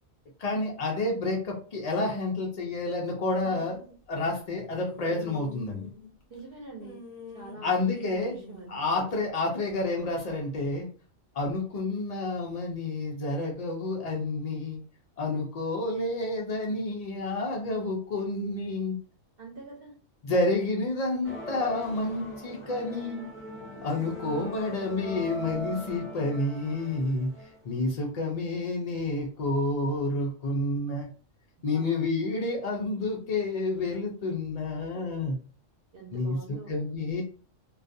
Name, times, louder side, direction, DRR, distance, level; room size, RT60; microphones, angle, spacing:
voice 1, 0.4-3.8 4.1-5.9 7.6-8.4 8.7-10.9 11.3-14.8 15.2-19.0 20.2-23.2 23.8-31.1 31.6-35.4 36.1-36.4 36.7-37.2, left 2 dB, 80° left, -1 dB, 0.3 m, -29 dB
sound 1, 3.3-4.0 4.6-6.4 6.8-9.3, left 4 dB, 45° left, 0.7 m, -46 dB
voice 2, 6.3-7.0 7.3-8.7 19.4-19.9 31.6-31.9 35.9-36.7, right 4 dB, 55° right, -2 dB, 0.8 m, -45 dB
sound 2, 21.2-27.8, equal, 15° left, 0.5 m, -40 dB
2.3 x 2.3 x 2.5 m, 0.41 s
omnidirectional pair, 1.3 m